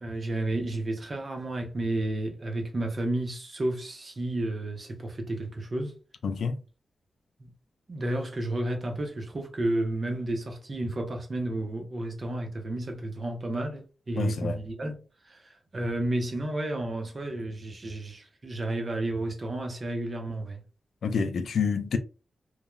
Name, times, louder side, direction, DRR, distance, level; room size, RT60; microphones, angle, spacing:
voice 1, 0.0-6.0 7.4-7.5 7.9-15.0 15.3-20.6, right 1 dB, 30° right, 0.6 m, -32 dB
voice 2, 6.2-6.6 14.2-14.6 21.0-22.0, left 5 dB, 65° left, 0.3 m, -28 dB
3.0 x 2.0 x 2.2 m
wide cardioid pair, 180°, 0 cm